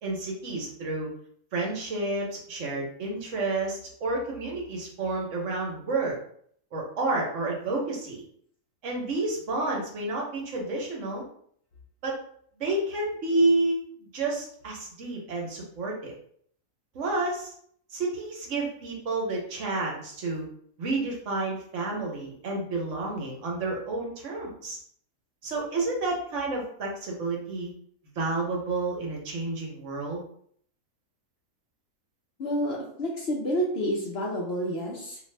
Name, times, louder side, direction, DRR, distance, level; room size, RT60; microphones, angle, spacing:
voice 1, 0.0-1.1 1.5-6.2 6.7-8.2 8.8-11.2 12.0-12.2 12.6-16.1 16.9-17.5 17.9-20.4 20.8-24.8 25.4-27.7 28.2-30.2, right 2 dB, 65° right, -1 dB, 1.0 m, -30 dB
voice 2, 32.4-35.2, equal, 60° left, -2 dB, 0.7 m, -29 dB
2.6 x 2.5 x 3.1 m, 0.62 s
omnidirectional pair, 1.4 m